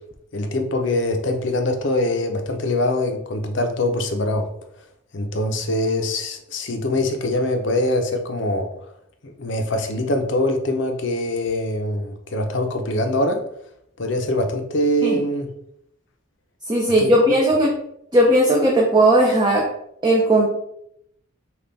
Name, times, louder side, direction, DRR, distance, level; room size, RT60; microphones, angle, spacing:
voice 1, 0.3-4.5 5.1-8.7 9.2-13.4 14.0-15.5 17.0-17.1, left 1 dB, 60° left, 5 dB, 0.6 m, -23 dB
voice 2, 16.7-17.7 18.1-19.7 20.0-20.5, right 1 dB, 20° right, -2 dB, 0.6 m, -17 dB
5.4 x 2.4 x 4.0 m, 0.75 s
head